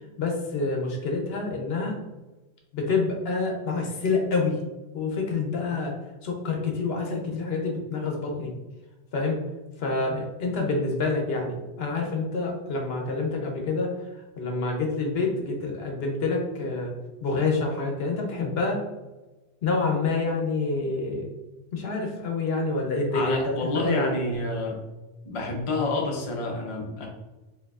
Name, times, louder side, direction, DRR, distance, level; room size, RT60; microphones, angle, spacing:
voice 1, 0.2-2.0 2.7-4.5 4.9-5.9 6.2-8.5 9.1-9.4 9.8-14.0 14.4-16.9 17.2-18.8 19.6-21.3 21.7-24.1, left 3 dB, 70° left, 1 dB, 0.9 m, -27 dB
voice 2, 23.1-24.8 25.2-27.1, left 2 dB, 35° left, 0 dB, 0.6 m, -28 dB
4.6 x 2.7 x 2.3 m, 1.1 s
omnidirectional pair, 1.1 m